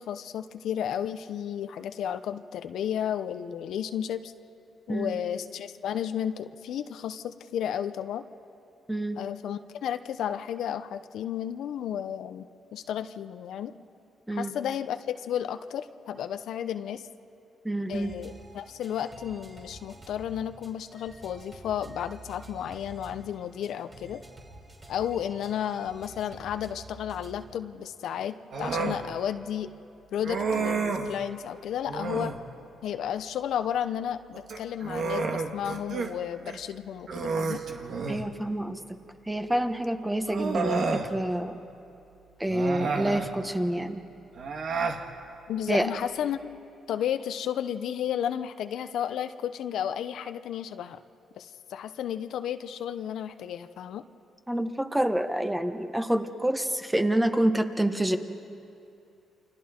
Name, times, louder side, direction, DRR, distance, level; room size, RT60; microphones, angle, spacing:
voice 1, 0.0-4.3 4.9-8.2 9.2-13.7 14.3-17.1 17.9-24.2 24.9-29.7 30.1-32.3 32.8-37.6 45.5-46.6 46.9-51.0 51.4-54.0, left 9 dB, 75° left, 10 dB, 0.7 m, -33 dB
voice 2, 17.6-18.1 38.1-38.8 39.3-41.6 42.4-44.0 45.7-45.9 54.5-58.2, right 1 dB, 10° right, 7 dB, 1.3 m, -27 dB
sound 1, 17.9-27.5, right 2 dB, 30° right, 3.7 m, -49 dB
Human voice, 28.5-29.0 30.2-31.1 31.9-32.4 34.3-36.1 36.5-36.6 37.1-38.3 39.5-39.6 40.3-41.1 42.5-43.3 44.4-45.0, right 4 dB, 60° right, 1.8 m, -30 dB
29.0 x 25.5 x 4.4 m, 2.7 s
cardioid pair, 90°, 0 cm